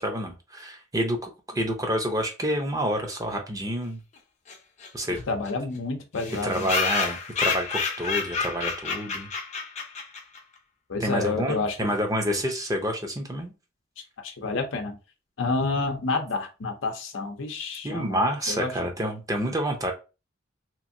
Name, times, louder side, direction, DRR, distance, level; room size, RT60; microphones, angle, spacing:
voice 1, 0.0-4.0 4.9-5.2 6.4-9.3 11.0-13.5 17.8-19.9, equal, 20° right, 3 dB, 0.6 m, -28 dB
sound 1, 4.5-4.6 4.8-4.9 5.2-5.3 5.5-5.6 6.2-10.4, left 5 dB, 35° left, 0.6 m, -29 dB
voice 2, 5.3-6.7 10.9-11.8 14.2-15.0 15.4-18.2 18.5-18.7, left 3 dB, 90° left, 3 dB, 0.6 m, -29 dB
2.9 x 2.6 x 2.6 m, 0.29 s
head